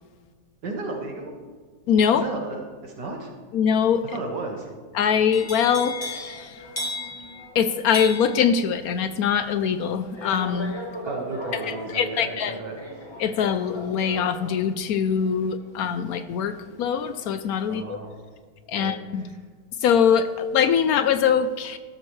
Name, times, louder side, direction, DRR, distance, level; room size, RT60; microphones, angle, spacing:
voice 1, 0.6-1.3 2.1-3.3 4.1-4.7 11.1-12.8 17.7-18.1 18.8-19.0, right 3 dB, 70° right, 0 dB, 2.1 m, -33 dB
voice 2, 1.9-2.3 3.5-4.0 4.9-6.6 7.5-10.7 11.5-12.6 13.2-18.0 18.7-19.3 19.8-21.8, left 7 dB, 70° left, 11 dB, 0.9 m, -23 dB
sound 1, 5.3-17.3 17.6-18.0, left 1 dB, 15° left, 1.3 m, -37 dB
13.0 x 13.0 x 3.2 m, 1.5 s
omnidirectional pair, 1.9 m